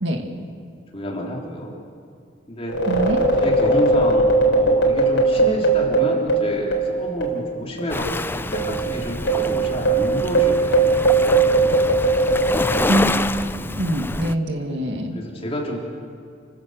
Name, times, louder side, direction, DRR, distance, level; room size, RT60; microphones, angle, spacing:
voice 1, 0.9-1.7 2.5-2.8 3.4-11.9 14.7-15.8, equal, 35° left, -2 dB, 3.8 m, -29 dB
sound 1, 2.7-7.5 7.8-7.9 8.5-13.3, right 3 dB, 80° left, 4.3 m, -19 dB
voice 2, 2.9-3.2 12.9-13.1 13.8-15.2, equal, 75° right, 4 dB, 2.2 m, -23 dB
Waves surf, 7.9-14.3, left 2 dB, 10° left, 0.5 m, -27 dB
29.5 x 15.5 x 6.6 m, 2.3 s
head